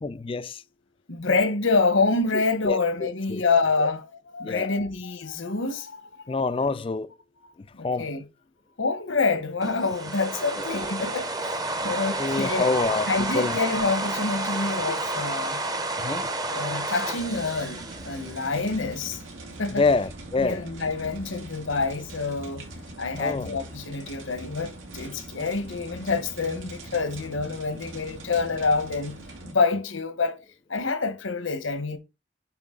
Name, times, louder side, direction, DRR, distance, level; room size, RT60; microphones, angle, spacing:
voice 1, 0.0-0.6 2.6-3.4 3.8-3.9 4.4-4.7 6.3-7.1 7.8-8.1 10.6-10.7 12.2-13.6 16.0-16.3 19.7-20.6 23.2-23.6, left 3 dB, 25° left, 0.3 m, -26 dB
voice 2, 1.1-6.4 7.7-8.2 8.8-11.6 11.8-12.7 13.1-15.6 16.5-17.8 18.0-19.2 19.6-19.9 20.4-22.7 23.0-29.2 29.4-30.4 30.7-32.0, left 4 dB, 80° left, 1.1 m, -27 dB
sound 1, 9.6-18.8, right 2 dB, 20° right, 0.7 m, -30 dB
sound 2, 17.1-29.5, right 1 dB, 90° right, 2.3 m, -42 dB
8.5 x 4.4 x 3.7 m
head